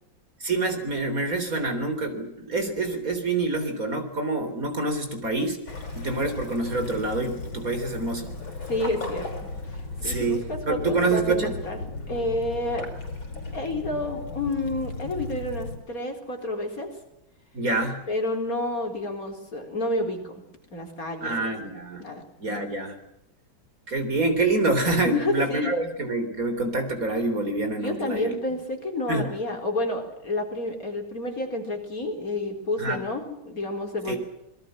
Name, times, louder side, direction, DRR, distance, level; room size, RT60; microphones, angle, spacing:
voice 1, 0.4-5.6 5.9-8.3 10.0-11.5 17.5-18.0 21.2-22.0 22.4-22.9 23.9-28.4 29.1-29.3 32.8-33.0 34.1-34.2, right 2 dB, 40° right, 7 dB, 4.2 m, -26 dB
Waves surf / Splash splatter / Trickle dribble, 5.7-15.8, left 3 dB, 75° left, 6.1 m, -36 dB
voice 2, 8.7-9.8 10.0-11.8 12.1-12.9 13.5-16.9 18.1-20.4 20.7-21.5 22.0-22.7 25.0-25.7 27.8-34.2, left 2 dB, 40° left, 4 dB, 4.5 m, -30 dB
27.5 x 22.0 x 7.6 m, 0.85 s
omnidirectional pair, 2.2 m